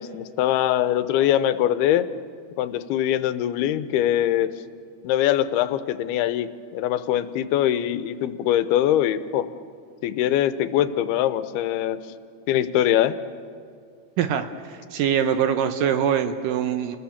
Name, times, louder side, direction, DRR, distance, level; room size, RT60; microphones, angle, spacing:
voice 1, 0.0-2.1 2.6-4.5 5.0-9.5 10.0-12.0 12.5-13.2, left 11 dB, 85° left, 12 dB, 2.8 m, -22 dB
voice 2, 14.2-14.5 14.9-17.0, right 8 dB, 75° right, 9 dB, 2.2 m, -23 dB
29.5 x 20.5 x 7.2 m, 2.2 s
omnidirectional pair, 4.5 m